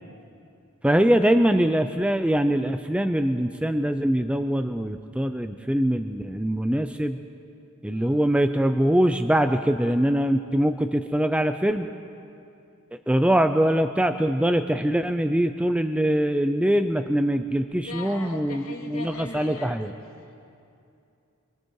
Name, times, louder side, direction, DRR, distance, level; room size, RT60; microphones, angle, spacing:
voice 1, 0.8-7.2 7.8-11.9 13.1-19.9, right 1 dB, 5° right, 8 dB, 0.5 m, -23 dB
voice 2, 7.9-8.2 17.9-20.0 20.3-20.4, left 2 dB, 85° left, -1 dB, 3.4 m, -40 dB
26.5 x 23.5 x 4.7 m, 2.6 s
head